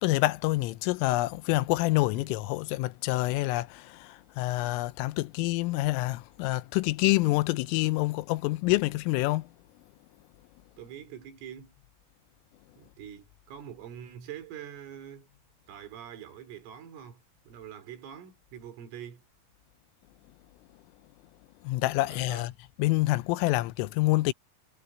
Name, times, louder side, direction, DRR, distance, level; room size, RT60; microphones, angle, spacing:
voice 1, 0.0-9.5 21.6-22.5 22.8-24.3, left 19 dB, 90° left, 3.3 m, -27 dB
voice 2, 10.8-11.8 12.8-15.3 15.7-19.2 22.1-22.5, right 9 dB, 80° right, 5.3 m, -45 dB
omnidirectional pair, 5.8 m